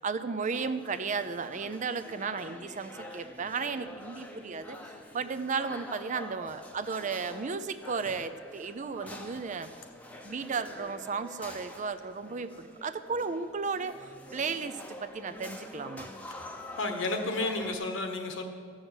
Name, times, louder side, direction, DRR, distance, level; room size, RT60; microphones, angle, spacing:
voice 1, 0.0-4.8 5.1-9.7 10.2-14.0 14.3-16.1, right 5 dB, 40° right, 12 dB, 0.5 m, -34 dB
sound 1, 0.5-17.7, left 1 dB, 10° left, 0.8 m, -46 dB
voice 2, 16.8-18.4, left 2 dB, 70° left, 5 dB, 1.3 m, -31 dB
14.0 x 6.3 x 8.0 m, 2.1 s
head